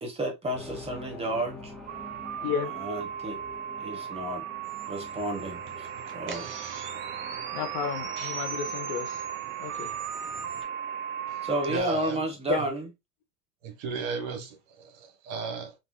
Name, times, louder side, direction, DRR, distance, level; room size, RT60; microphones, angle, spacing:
voice 1, 0.0-1.7 2.8-3.4 3.8-4.4 4.9-5.9 6.1-6.5 11.4-12.9, right 1 dB, 15° right, 1.1 m, -31 dB
sound 1, 0.5-9.4 9.7-9.8, left 2 dB, ahead, 0.8 m, -47 dB
sound 2, 1.9-11.8, right 9 dB, 85° right, 0.7 m, -36 dB
sound 3, 4.6-10.6, right 5 dB, 30° right, 0.8 m, -43 dB
voice 2, 7.5-9.2 9.6-9.9 12.5-12.6, left 7 dB, 60° left, 0.8 m, -32 dB
voice 3, 11.7-12.2 12.6-12.7 13.6-15.8, right 5 dB, 60° right, 1.2 m, -35 dB
3.6 x 2.9 x 2.2 m
supercardioid pair, 115°, 38 cm